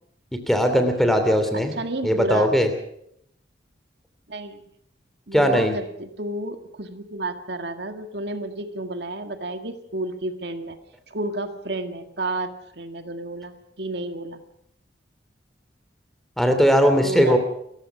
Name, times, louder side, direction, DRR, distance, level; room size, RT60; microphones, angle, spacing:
voice 1, 0.5-1.7 2.0-2.7 5.3-5.7 16.4-17.4, equal, ahead, 7 dB, 2.9 m, -19 dB
voice 2, 1.5-2.5 4.3-4.6 5.3-10.8 11.1-14.4 17.0-17.4, right 2 dB, 65° right, 7 dB, 1.9 m, -31 dB
28.5 x 15.0 x 6.1 m, 0.72 s
head